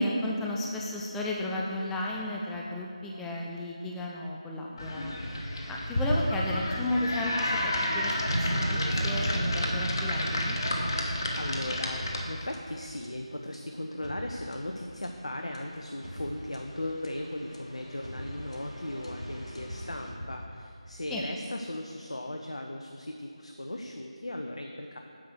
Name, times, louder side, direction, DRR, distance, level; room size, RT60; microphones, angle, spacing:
voice 1, 0.0-5.2 5.7-10.6 21.1-21.2, left 1 dB, 5° left, -3 dB, 0.4 m, -33 dB
sound 1, 4.8-12.5, left 1 dB, 40° left, 1.2 m, -31 dB
sound 2, 8.3-12.5, right 1 dB, 90° right, 0.3 m, -32 dB
voice 2, 10.8-25.0, left 1 dB, 65° left, 3 dB, 0.9 m, -37 dB
sound 3, 12.0-21.0, equal, 90° left, 2.3 m, -44 dB
9.6 x 6.6 x 6.4 m, 2.5 s
figure-of-eight pair, 160°, 3 cm